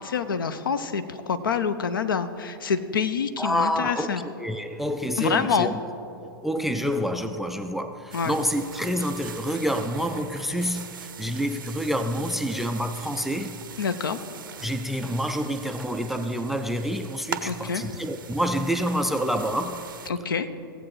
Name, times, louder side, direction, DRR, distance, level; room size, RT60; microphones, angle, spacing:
voice 1, 0.0-4.3 5.2-5.7 8.1-8.3 13.8-14.2 17.4-17.8 20.1-20.5, left 6 dB, 65° left, 11 dB, 0.7 m, -26 dB
voice 2, 3.4-5.8 6.2-13.6 14.6-19.9, equal, ahead, 8 dB, 0.3 m, -28 dB
sound 1, 8.1-20.1, right 7 dB, 65° right, 0.6 m, -41 dB
16.5 x 8.0 x 3.9 m, 2.7 s
figure-of-eight pair, 105°, 12 cm